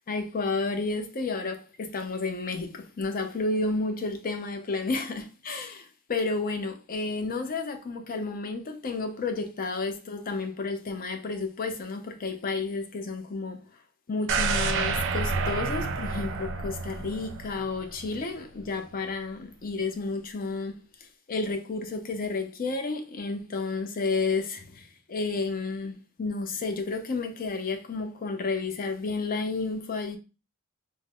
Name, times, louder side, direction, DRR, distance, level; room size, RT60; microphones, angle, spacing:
voice 1, 0.1-13.6 14.1-20.8 21.3-30.2, left 3 dB, 40° left, 0.5 m, -31 dB
sound 1, 14.3-18.3 18.6-18.7, right 4 dB, 55° right, 0.5 m, -29 dB
3.5 x 2.0 x 3.6 m
head